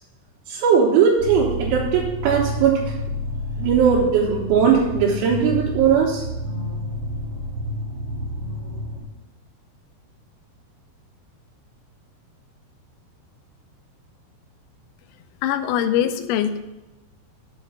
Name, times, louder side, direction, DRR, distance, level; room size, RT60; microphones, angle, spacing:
voice 1, 0.5-2.8 3.6-6.2, right 7 dB, 80° right, -4 dB, 3.3 m, -19 dB
sound 1, 1.2-9.0, equal, 60° right, 2.4 m, -29 dB
voice 2, 15.4-16.6, left 10 dB, 90° left, 10 dB, 3.3 m, -22 dB
8.7 x 4.5 x 7.0 m, 1.0 s
omnidirectional pair, 5.9 m